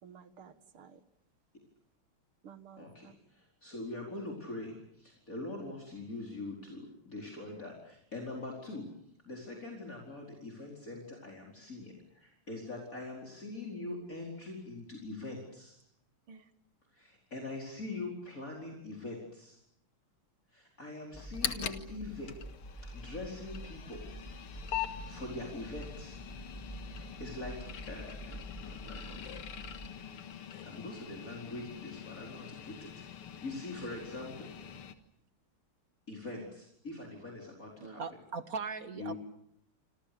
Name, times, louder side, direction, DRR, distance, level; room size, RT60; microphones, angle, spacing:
voice 1, 0.0-1.0 2.4-3.1 16.3-16.5 36.3-36.4 37.8-38.1, right 5 dB, 80° right, 11 dB, 2.5 m, -52 dB
voice 2, 2.8-8.8 9.2-15.8 16.9-19.6 20.5-22.3 22.9-24.0 24.8-26.2 26.9-27.6 27.9-29.3 30.6-32.9 33.4-34.5 36.1-38.0 39.0-39.2, left 2 dB, 40° left, -1 dB, 4.9 m, -43 dB
sound 1, 21.1-34.9, left 9 dB, 85° left, 2.5 m, -43 dB
sound 2, 21.1-29.9, right 2 dB, ahead, 5.8 m, -47 dB
voice 3, 38.0-39.1, right 5 dB, 50° right, 11 dB, 1.5 m, -38 dB
28.0 x 26.5 x 6.8 m, 0.72 s
omnidirectional pair, 2.4 m